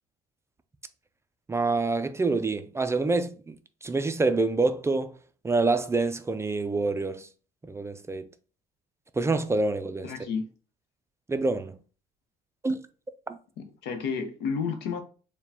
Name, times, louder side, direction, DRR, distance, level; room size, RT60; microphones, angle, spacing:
voice 1, 1.5-5.2 5.4-7.3 7.6-8.3 9.1-10.1 11.3-11.8 12.6-12.8 13.3-13.4, right 3 dB, 15° right, 0.3 m, -27 dB
voice 2, 10.0-10.4 13.6-15.0, left 6 dB, 90° left, 0.8 m, -31 dB
4.7 x 2.2 x 3.4 m
cardioid pair, 110°, 17 cm